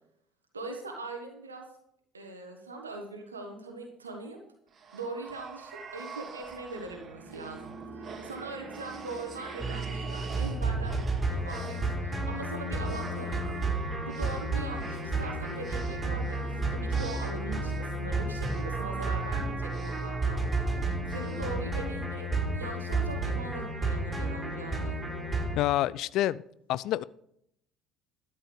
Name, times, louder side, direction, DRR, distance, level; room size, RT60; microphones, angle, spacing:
voice 1, 0.5-1.7 2.1-4.4 4.9-11.0 11.3-13.4 14.0-22.3 22.5-25.0, right 3 dB, 85° right, 2 dB, 1.4 m, -41 dB
sound 1, 4.7-22.4, right 5 dB, 40° right, 2.2 m, -45 dB
sound 2, 9.6-25.6, right 2 dB, 20° right, 5.7 m, -31 dB
voice 2, 25.6-26.4 26.7-27.0, left 14 dB, 60° left, 20 dB, 0.4 m, -27 dB
12.5 x 8.7 x 5.1 m, 0.73 s
figure-of-eight pair, 60°, 0 cm